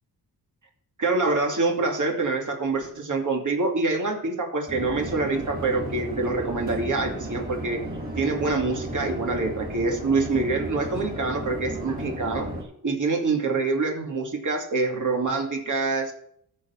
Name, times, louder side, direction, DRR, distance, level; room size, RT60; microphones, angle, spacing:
voice 1, 1.0-7.8 8.2-12.5 12.8-16.2, right 3 dB, 50° right, 1 dB, 2.7 m, -26 dB
Conversation / Chatter / Fixed-wing aircraft airplane, 4.7-12.6, right 1 dB, 20° right, 3.8 m, -34 dB
14.0 x 4.8 x 5.9 m, 0.67 s
cardioid pair, 70°, 40 cm